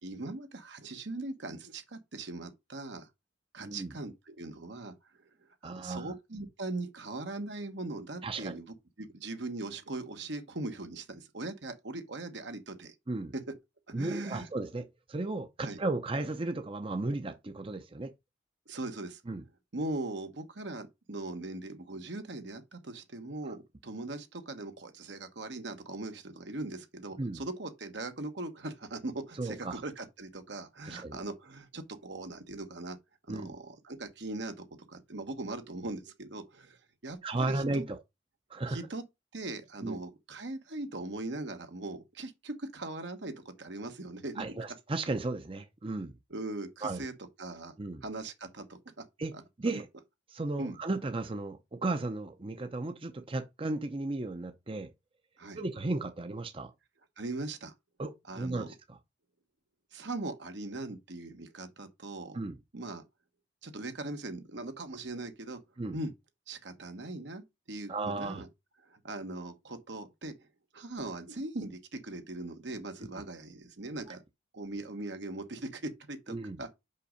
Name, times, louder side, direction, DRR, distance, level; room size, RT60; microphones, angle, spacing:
voice 1, 0.0-3.1 3.5-4.9 5.6-8.6 9.0-12.9 13.3-13.4 13.9-14.5 15.6-15.8 18.7-19.2 19.7-33.0 33.3-36.8 37.0-37.8 38.7-39.0 39.3-44.4 46.3-47.1 47.4-47.8 48.0-48.8 49.3-49.8 50.6-50.8 55.4-55.6 57.2-57.7 58.3-58.7 59.9-62.4 62.7-63.0 63.6-65.6 65.9-66.1 66.5-68.5 68.9-70.5 70.7-74.2 74.5-76.7, right 2 dB, 70° right, 1.2 m, -40 dB
voice 2, 3.6-3.9 5.6-6.1 8.2-8.5 13.1-13.3 13.9-18.1 19.3-19.4 27.2-27.4 29.4-29.8 30.8-31.2 33.3-33.5 37.2-38.0 38.5-38.8 39.8-40.0 44.4-46.1 46.8-47.0 47.8-48.0 49.2-49.3 49.6-49.9 50.3-54.9 55.5-56.7 58.0-59.0 62.3-62.6 65.8-66.0 67.9-68.4 74.1-74.2 76.3-76.6, right 2 dB, 30° right, 0.7 m, -35 dB
5.6 x 5.2 x 5.1 m
head